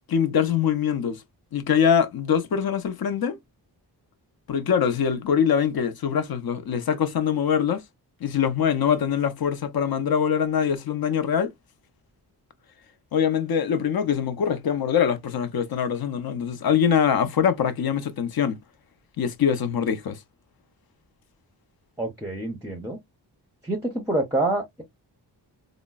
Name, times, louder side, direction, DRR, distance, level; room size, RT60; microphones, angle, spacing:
voice 1, 0.1-1.2 1.5-3.4 4.5-7.8 8.2-11.5 13.1-18.6 19.2-20.2, left 8 dB, 60° left, 0.6 m, -23 dB
voice 2, 22.0-23.0 23.6-24.8, right 2 dB, 5° right, 0.6 m, -27 dB
4.2 x 2.0 x 2.2 m
wide cardioid pair, 155°, 41 cm